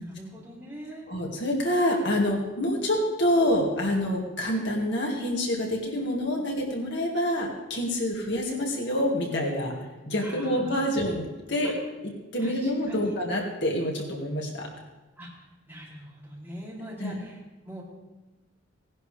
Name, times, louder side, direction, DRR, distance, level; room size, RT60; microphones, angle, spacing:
voice 1, 0.0-1.0 10.2-10.7 11.6-11.7 12.4-13.1 15.2-15.3 15.7-17.4 17.6-17.8, equal, 10° right, -6 dB, 3.3 m, -41 dB
voice 2, 1.1-9.8 10.1-11.7 12.0-14.7 17.0-17.2, left 1 dB, 60° left, 0 dB, 2.1 m, -27 dB
18.0 x 11.0 x 3.5 m, 1.1 s
head